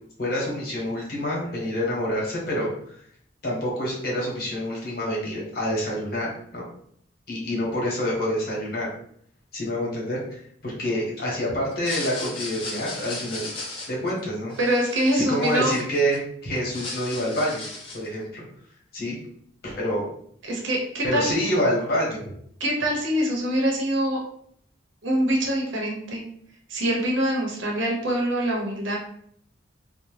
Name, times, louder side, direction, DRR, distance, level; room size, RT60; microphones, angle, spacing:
voice 1, 0.2-2.7 3.4-6.6 7.3-8.9 9.5-13.5 13.9-14.5 15.1-17.6 17.9-18.4 18.9-19.2 19.6-20.0 21.0-22.2, equal, 50° left, -4 dB, 1.0 m, -27 dB
sound 1, 11.7-16.2 16.5-18.1, left 2 dB, 25° left, 0.5 m, -36 dB
voice 2, 14.6-15.7 20.4-21.3 22.6-24.2 25.0-26.2 26.7-29.0, right 1 dB, 75° right, -1 dB, 0.7 m, -24 dB
2.7 x 2.1 x 3.1 m, 0.66 s
head